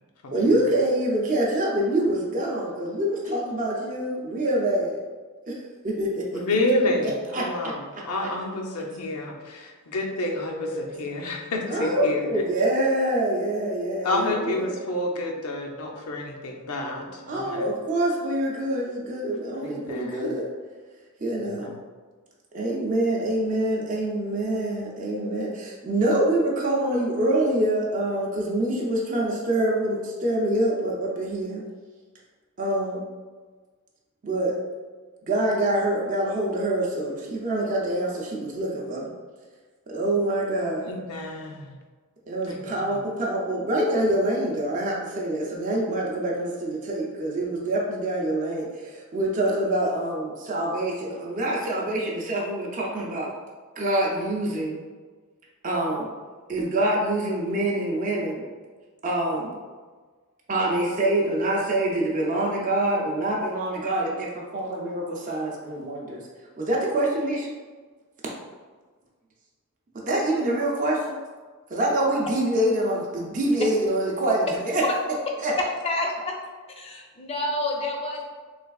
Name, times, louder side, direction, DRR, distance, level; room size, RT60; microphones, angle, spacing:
voice 1, 0.3-5.0 5.5-5.6 5.8-6.2 7.3-7.4 10.5-10.9 11.7-14.7 17.3-20.5 21.2-21.7 22.5-31.6 32.6-33.0 34.2-34.5 35.2-39.1 39.9-40.9 42.3-53.3 53.8-54.8 55.6-56.1 56.5-58.4 59.0-59.5 60.5-66.2 66.6-67.5 69.9-71.2 71.7-74.8 75.4-75.5, right 1 dB, 35° right, -3 dB, 0.5 m, -25 dB
voice 2, 6.3-12.4 14.0-17.7 19.6-20.3 21.4-21.8 40.8-41.8 42.4-43.0, left 1 dB, 85° left, 1 dB, 0.6 m, -29 dB
voice 3, 75.6-76.3 76.8-78.3, left 1 dB, 25° left, 0 dB, 0.5 m, -28 dB
3.3 x 3.2 x 2.3 m, 1.4 s
head